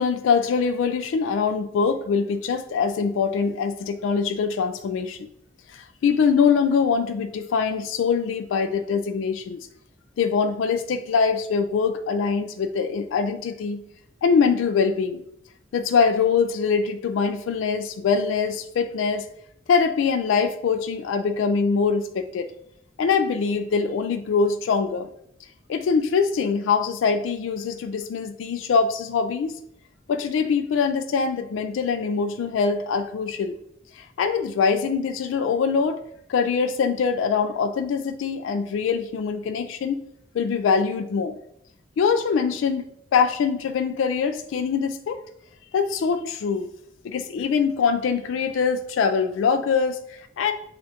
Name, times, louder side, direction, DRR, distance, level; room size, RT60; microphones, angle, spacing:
voice 1, 0.0-5.3 5.7-9.6 10.2-13.8 14.2-15.2 15.7-19.3 19.7-22.5 23.0-25.1 25.7-29.6 30.1-33.5 34.0-36.0 36.3-40.0 40.3-41.4 42.0-42.9 43.1-45.2 45.7-46.7 47.0-50.5, left 5 dB, 80° left, 8 dB, 0.3 m, -23 dB
6.9 x 2.4 x 2.8 m, 0.73 s
head